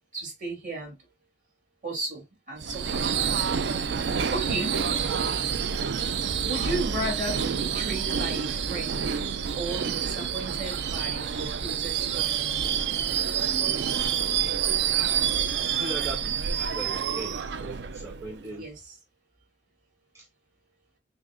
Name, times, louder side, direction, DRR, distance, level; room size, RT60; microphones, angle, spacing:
voice 1, 0.1-1.0 1.8-3.1 4.3-4.8 6.4-9.1 9.5-12.9 18.6-19.0, right 2 dB, 45° right, 2.0 m, -35 dB
Subway metro underground / Screech, 2.6-18.5, right 7 dB, 70° right, 0.4 m, -28 dB
voice 2, 15.5-18.7 20.1-20.3, right 2 dB, 15° right, 0.8 m, -39 dB
6.2 x 2.1 x 2.3 m
head